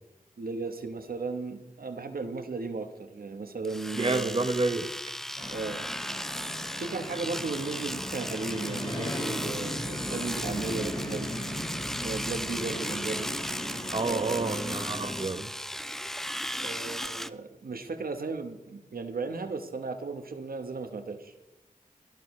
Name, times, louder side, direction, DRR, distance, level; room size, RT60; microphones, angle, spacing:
voice 1, 0.4-4.5 5.5-5.8 6.8-11.3 12.0-13.3 14.0-14.8 16.6-21.3, right 4 dB, 90° right, 7 dB, 1.1 m, -35 dB
Domestic sounds home sounds, 3.6-17.3, equal, ahead, 0.6 m, -36 dB
voice 2, 3.9-4.9 13.9-15.5, right 3 dB, 35° right, 9 dB, 0.8 m, -29 dB
sound 1, 5.4-15.2, equal, 30° left, 5.8 m, -37 dB
17.5 x 13.5 x 3.2 m, 0.93 s
wide cardioid pair, 50°, 15 cm